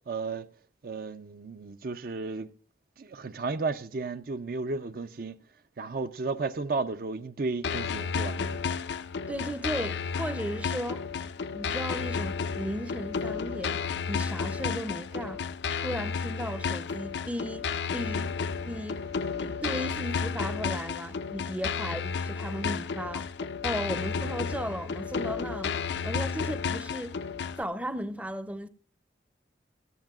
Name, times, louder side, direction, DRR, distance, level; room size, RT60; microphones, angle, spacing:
voice 1, 0.1-0.5 0.8-2.5 3.0-5.4 5.8-8.6 22.6-22.7, right 3 dB, 55° right, 0.5 m, -33 dB
sound 1, 7.6-27.6, left 5 dB, 75° left, 0.5 m, -32 dB
voice 2, 9.3-11.1 11.5-15.4 15.7-19.1 19.4-23.3 23.6-27.2 27.6-28.7, equal, 10° right, 0.6 m, -36 dB
18.0 x 14.0 x 2.4 m
head